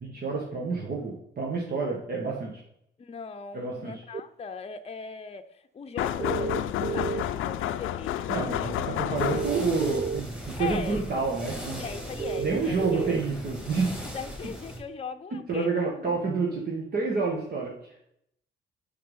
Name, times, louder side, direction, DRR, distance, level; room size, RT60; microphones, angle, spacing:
voice 1, 0.0-2.5 3.5-3.9 8.3-11.8 12.4-14.1 15.5-18.0, right 4 dB, 50° right, -1 dB, 1.8 m, -29 dB
voice 2, 3.0-8.8 10.6-11.1 11.8-13.2 14.0-15.7 16.0-16.2 16.5-16.6, left 5 dB, 30° left, 7 dB, 0.7 m, -39 dB
sound 1, 4.1-4.2 6.2-7.4 9.2-10.2 12.2-13.2, right 6 dB, 35° right, 0.5 m, -31 dB
sound 2, 6.0-9.8, left 11 dB, 85° left, 0.5 m, -30 dB
sound 3, 9.1-14.8, equal, 5° right, 2.5 m, -38 dB
6.6 x 6.0 x 5.7 m, 0.74 s
cardioid pair, 90°, 20 cm